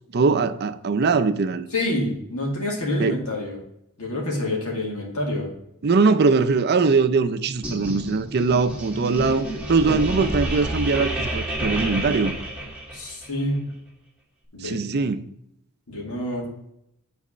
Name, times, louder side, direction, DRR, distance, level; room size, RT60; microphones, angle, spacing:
voice 1, 0.1-1.6 3.0-3.1 5.8-12.4 14.6-15.2, right 4 dB, 50° right, 0.5 m, -21 dB
voice 2, 1.7-3.6 4.0-5.5 12.9-13.6 14.5-14.8 15.9-16.5, left 1 dB, 85° left, 2.3 m, -27 dB
sound 1, 7.6-13.3, right 1 dB, 5° right, 1.5 m, -29 dB
7.5 x 4.1 x 5.4 m
head